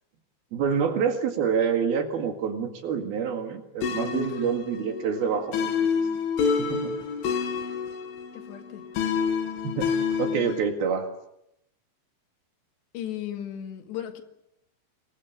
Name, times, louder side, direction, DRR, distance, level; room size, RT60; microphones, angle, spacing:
voice 1, 0.5-5.7 6.6-6.9 9.6-9.9 10.2-11.1, right 6 dB, 60° right, 3.5 m, -27 dB
sound 1, 3.8-10.7, left 6 dB, 90° left, 5.2 m, -28 dB
voice 2, 8.3-8.9 12.9-14.2, left 11 dB, 65° left, 4.0 m, -36 dB
26.5 x 22.0 x 8.3 m
omnidirectional pair, 5.5 m